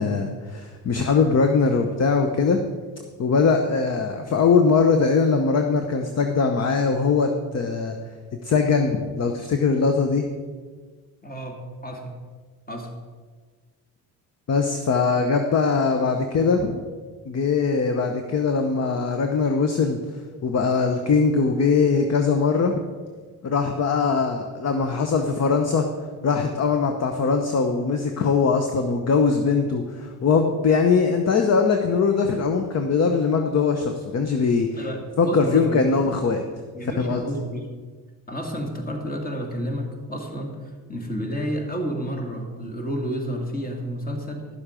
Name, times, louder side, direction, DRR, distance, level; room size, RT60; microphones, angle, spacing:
voice 1, 0.0-2.6 3.2-8.0 8.4-10.3 14.5-16.8 17.3-20.0 20.4-22.8 23.4-25.8 26.2-34.8 35.2-36.4 37.0-37.2, left 5 dB, 35° left, 5 dB, 0.9 m, -21 dB
voice 2, 11.2-12.1 12.7-12.9 34.8-35.9 36.7-37.7 38.3-44.5, equal, 20° left, 3 dB, 2.0 m, -30 dB
11.0 x 7.1 x 5.1 m, 1.5 s
cardioid pair, 95°, 43 cm